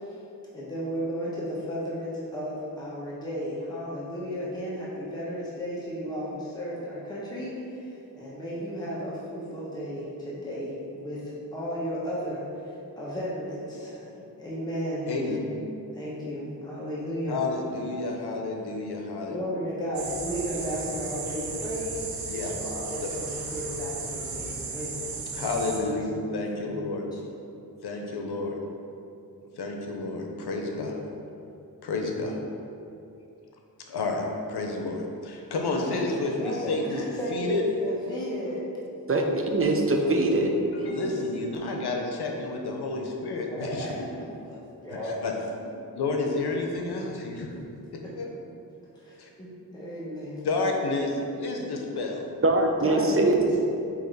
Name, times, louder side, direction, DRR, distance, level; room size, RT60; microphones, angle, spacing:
voice 1, 0.5-12.7 13.0-15.5 15.9-17.4 19.3-22.0 22.5-25.5 25.8-26.2 26.6-27.2 35.9-36.0 36.4-38.7 40.0-40.1 40.4-40.7 43.4-45.2 48.0-48.1 48.9-50.6 52.8-53.5, equal, 10° left, -7 dB, 1.2 m, -34 dB
voice 2, 15.1-15.4 17.3-19.5 22.2-22.5 25.3-26.0 26.3-27.1 27.8-28.6 29.6-31.0 31.8-32.4 33.9-37.0 37.3-37.6 40.7-43.9 45.0-45.3 45.9-47.5 47.9-48.3 49.2-49.3 50.4-52.2, left 3 dB, 80° left, 1 dB, 0.8 m, -30 dB
sound 1, 19.9-25.8, right 4 dB, 80° right, 0.9 m, -35 dB
voice 3, 39.1-40.5 52.4-53.6, right 2 dB, 35° right, 2 dB, 0.8 m, -22 dB
8.5 x 3.0 x 3.9 m, 2.7 s
cardioid pair, 65°, 38 cm